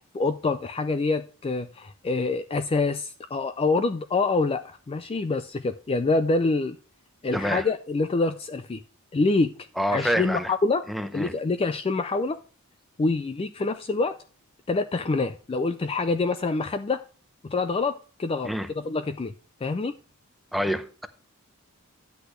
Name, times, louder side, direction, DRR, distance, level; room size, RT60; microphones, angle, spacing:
voice 1, 0.1-6.8 7.2-8.8 9.1-9.5 9.9-10.8 11.1-12.4 13.0-14.2 14.7-17.0 17.4-19.3 19.6-20.0, left 3 dB, 25° left, 10 dB, 0.4 m, -26 dB
voice 2, 7.3-7.7 9.8-10.5 10.9-11.3 18.4-18.7 20.5-21.1, equal, ahead, 10 dB, 0.7 m, -27 dB
10.0 x 8.2 x 3.1 m, 0.38 s
head